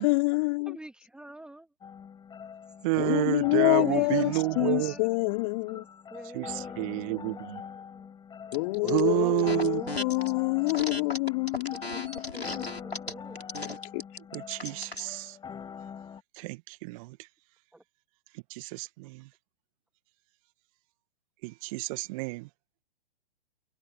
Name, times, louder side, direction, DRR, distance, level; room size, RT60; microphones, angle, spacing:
voice 1, 0.0-0.8 3.0-5.9 8.5-12.7 13.6-14.0, left 26 dB, 35° left, 5.3 m, -27 dB
voice 2, 0.7-1.7 3.6-5.3 5.7-5.8 6.1-8.1 8.8-9.3 9.8-10.1 12.3-13.8 17.7-17.8, right 1 dB, 5° right, 2.4 m, -45 dB
sound 1, 1.8-16.2, left 7 dB, 15° left, 7.9 m, -44 dB
voice 3, 2.8-4.9 6.3-7.6 8.9-9.8 14.3-15.4 16.3-17.3 18.3-19.3 21.4-22.5, right 25 dB, 35° right, 1.8 m, -30 dB
sound 2, 8.5-9.0 9.4-10.3 10.7-15.1, left 2 dB, 85° left, 7.0 m, -37 dB
figure-of-eight pair, 115°, 31 cm